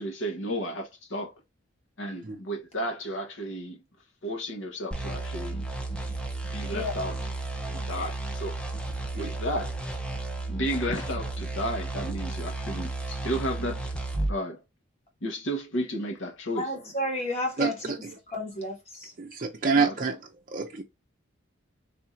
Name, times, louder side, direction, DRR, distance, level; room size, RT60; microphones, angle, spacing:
voice 1, 0.0-1.3 2.0-3.8 4.2-5.6 6.5-7.1 7.6-8.6 9.2-9.7 10.5-13.9 14.3-14.6 15.2-16.7 19.7-19.9, equal, 75° left, 1.0 m, -33 dB
sound 1, 4.9-14.4, right 2 dB, 5° left, 0.6 m, -33 dB
voice 2, 16.5-17.9 18.3-19.1, left 1 dB, 30° left, 1.1 m, -32 dB
voice 3, 17.6-18.1 19.2-20.2 20.5-20.8, right 4 dB, 45° right, 0.5 m, -27 dB
3.4 x 2.6 x 4.3 m
head